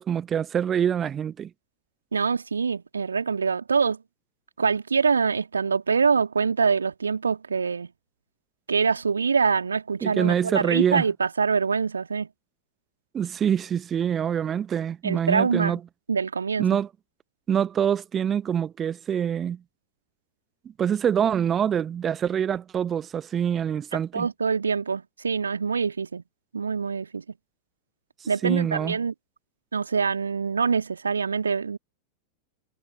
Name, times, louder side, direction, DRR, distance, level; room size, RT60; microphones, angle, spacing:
voice 1, 0.0-1.5 10.0-11.0 13.1-15.8 16.6-16.9 17.5-19.6 20.8-24.3 28.4-29.0, right 8 dB, 25° right, 0.9 m, -25 dB
voice 2, 2.1-4.0 4.6-7.9 8.7-12.3 15.0-15.8 16.1-16.6 23.9-26.2 26.5-27.2 28.3-29.1 29.7-31.8, right 5 dB, 75° right, 1.8 m, -25 dB
figure-of-eight pair, 90°, 0 cm